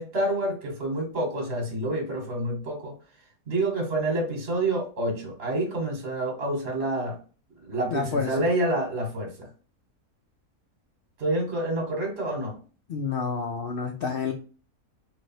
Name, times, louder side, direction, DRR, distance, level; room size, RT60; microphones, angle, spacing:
voice 1, 0.0-2.9 3.5-7.2 7.6-9.5 11.2-12.6, right 1 dB, 45° right, 1 dB, 1.4 m, -28 dB
voice 2, 7.9-8.3 12.9-14.3, left 5 dB, 75° left, 3 dB, 0.5 m, -29 dB
3.2 x 2.8 x 4.2 m, 0.38 s
omnidirectional pair, 1.6 m